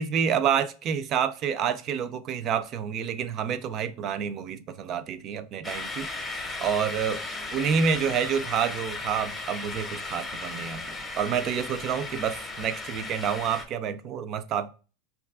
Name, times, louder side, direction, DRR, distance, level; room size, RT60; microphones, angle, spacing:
voice 1, 0.0-7.2 7.5-14.7, right 7 dB, 40° right, 0.3 m, -28 dB
sound 1, 5.6-13.6, left 3 dB, 10° left, 0.7 m, -36 dB
5.2 x 2.3 x 2.3 m
supercardioid pair, 130°, 0 cm